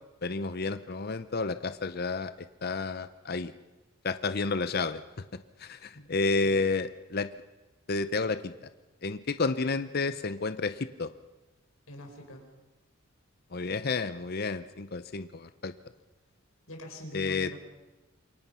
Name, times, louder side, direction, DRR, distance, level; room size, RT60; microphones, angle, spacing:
voice 1, 0.2-2.3 2.6-3.5 4.0-5.0 5.6-7.3 7.9-8.7 9.0-11.1 13.5-15.7 17.1-17.5, left 3 dB, 45° left, 12 dB, 0.7 m, -30 dB
voice 2, 11.9-12.5 16.7-17.6, equal, 80° left, 3 dB, 4.9 m, -44 dB
27.5 x 23.0 x 5.7 m, 1.1 s
head